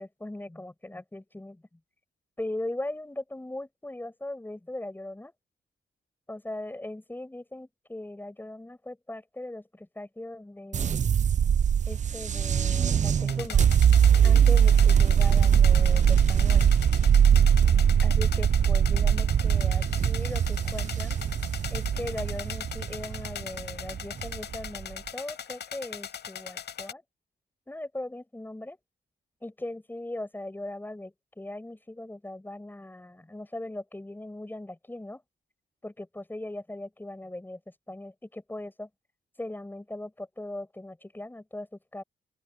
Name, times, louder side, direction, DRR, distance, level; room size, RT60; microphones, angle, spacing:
voice 1, 0.0-1.6 2.4-5.3 6.3-11.0 11.9-13.6 14.2-16.7 18.0-21.2 21.7-27.0 27.7-28.8 29.4-35.2 35.8-38.9 39.4-42.0, left 1 dB, 10° left, 6.3 m, -39 dB
sound 1, 10.7-24.9, right 8 dB, 45° right, 0.5 m, -22 dB
sound 2, 13.3-26.9, left 8 dB, 75° left, 6.2 m, -39 dB
open air
wide cardioid pair, 125°, 18 cm